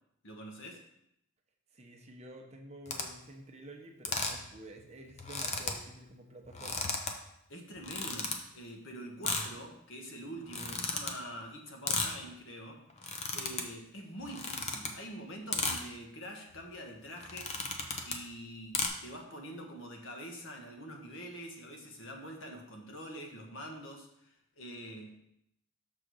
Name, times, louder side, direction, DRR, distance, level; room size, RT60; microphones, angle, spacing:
voice 1, 0.2-0.8 7.5-12.8 13.3-17.6 18.0-25.2, equal, 65° left, 2 dB, 1.3 m, -45 dB
voice 2, 1.7-7.0, right 1 dB, 35° right, 2 dB, 0.8 m, -50 dB
sound 1, 2.9-3.0 4.0-4.5 4.8-4.9 5.1-5.8 6.4-7.1 7.8-8.3 9.2-9.5 10.4-11.1 11.9-12.2 12.9-13.6 14.2-14.9 15.5-15.8 16.5-16.7 17.2-18.2 18.7-18.9, left 4 dB, 35° left, 0.7 m, -34 dB
6.6 x 3.8 x 6.2 m, 0.77 s
head